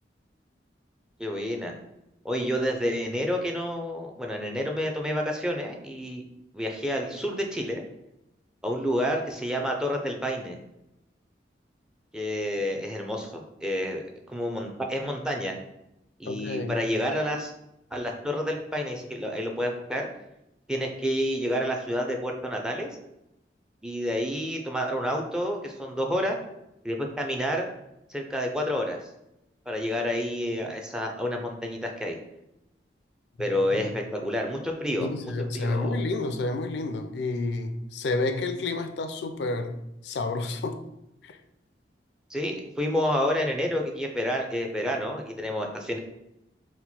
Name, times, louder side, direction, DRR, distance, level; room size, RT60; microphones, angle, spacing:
voice 1, 1.2-1.7 2.2-6.2 6.5-7.8 8.6-10.6 12.1-14.0 14.3-15.6 16.2-17.5 17.9-20.1 20.7-22.9 23.8-26.4 26.8-27.7 28.1-29.0 29.7-32.2 33.4-35.1 35.5-36.0 42.3-46.0, equal, 5° right, 0.4 m, -29 dB
voice 2, 16.3-16.8 33.4-33.5 33.7-33.8 35.0-40.8 41.2-41.4, left 2 dB, 80° left, 0.4 m, -30 dB
4.3 x 2.2 x 4.1 m
head